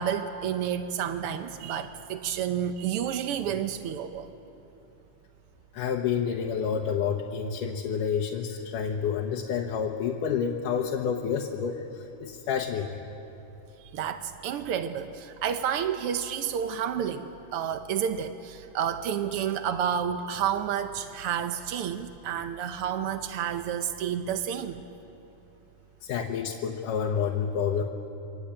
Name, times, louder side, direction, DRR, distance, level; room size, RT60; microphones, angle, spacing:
voice 1, 0.0-4.3 13.8-24.8, right 8 dB, 75° right, 8 dB, 1.3 m, -30 dB
voice 2, 5.7-12.9 26.0-27.8, left 7 dB, 85° left, 0 dB, 2.7 m, -29 dB
29.0 x 23.0 x 8.7 m, 2.9 s
omnidirectional pair, 3.7 m